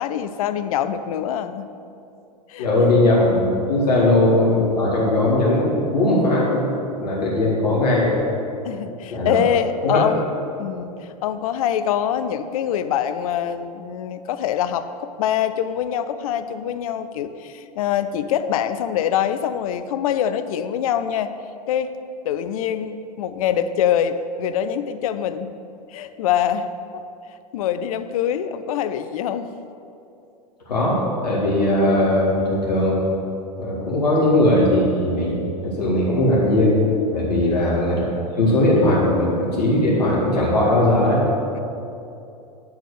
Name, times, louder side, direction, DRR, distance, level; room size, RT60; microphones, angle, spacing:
voice 1, 0.0-1.7 2.5-3.0 8.6-10.2 10.6-21.3 21.7-22.0 22.2-25.5 25.9-27.0 27.5-29.5 37.3-37.8 41.5-41.6, left 9 dB, 60° left, 11 dB, 0.5 m, -24 dB
voice 2, 2.6-6.7 7.0-8.1 9.1-9.4 9.8-10.0 30.7-31.0 31.2-33.1 33.6-36.8 37.1-38.0 38.4-41.2, left 1 dB, 75° left, -5 dB, 2.0 m, -19 dB
9.4 x 4.2 x 6.5 m, 2.7 s
figure-of-eight pair, 90°, 21 cm